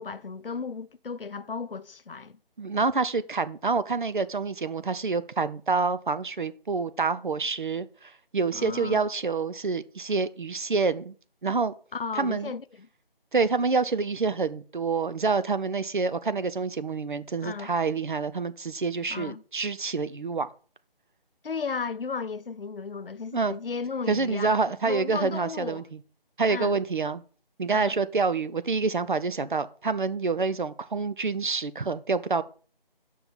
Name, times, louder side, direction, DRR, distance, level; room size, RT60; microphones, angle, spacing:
voice 1, 0.0-2.4 8.5-9.0 11.9-12.9 17.4-17.7 19.1-19.4 21.4-25.8 26.5-26.8 27.7-28.0, left 5 dB, 70° left, 0.7 m, -35 dB
voice 2, 2.6-11.1 11.4-11.7 12.2-12.5 13.3-20.5 23.3-23.5 24.1-25.8 26.4-27.2 27.6-32.4, right 4 dB, 55° right, 0.7 m, -27 dB
6.1 x 5.6 x 7.1 m
figure-of-eight pair, 170°, 29 cm